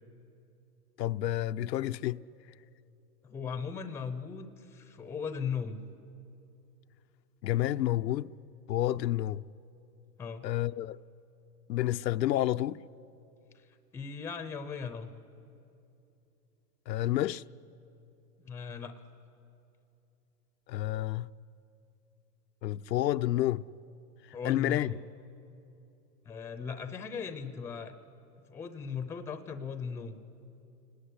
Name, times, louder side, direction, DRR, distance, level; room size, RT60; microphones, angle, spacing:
voice 1, 1.0-2.2 7.4-8.3 8.7-9.4 10.4-11.0 11.7-12.8 16.9-17.4 20.7-21.3 22.6-23.6 24.4-24.9, left 14 dB, 80° left, 0.7 m, -29 dB
voice 2, 3.2-5.8 10.2-10.5 13.9-15.1 18.4-18.9 24.3-25.0 26.2-27.9 28.5-30.2, left 6 dB, 5° left, 0.6 m, -38 dB
29.0 x 18.5 x 9.8 m
hypercardioid pair, 140°, 50 cm